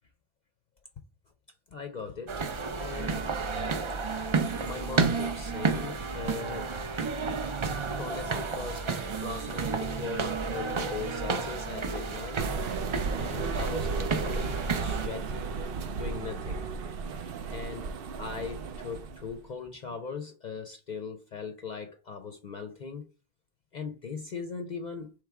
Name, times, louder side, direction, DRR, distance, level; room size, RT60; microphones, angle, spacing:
voice 1, 1.7-2.4 2.8-3.3 4.6-6.8 7.6-8.9 9.2-12.5 13.1-16.6 17.5-23.1 23.7-25.1, left 5 dB, 50° left, 0.6 m, -39 dB
sound 1, 2.3-15.1, right 4 dB, 40° right, 0.5 m, -31 dB
sound 2, 12.4-19.3, right 4 dB, 65° right, 0.8 m, -34 dB
3.4 x 3.3 x 4.6 m
omnidirectional pair, 1.0 m